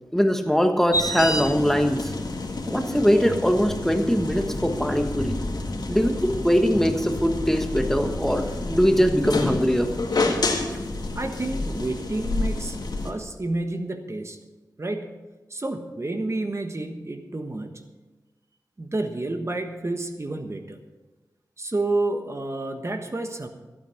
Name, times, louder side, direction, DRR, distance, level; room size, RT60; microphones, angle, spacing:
voice 1, 0.1-2.1 2.7-5.4 5.9-9.9, equal, 5° left, 5 dB, 1.4 m, -22 dB
sound 1, 0.9-13.1, left 2 dB, 75° left, 1.8 m, -29 dB
voice 2, 11.1-12.8 13.0-14.4 14.8-15.2 15.5-17.7 18.8-20.8 21.6-23.5, right 2 dB, 40° right, 6 dB, 1.3 m, -29 dB
15.0 x 8.8 x 5.8 m, 1.2 s
cardioid pair, 45°, 7 cm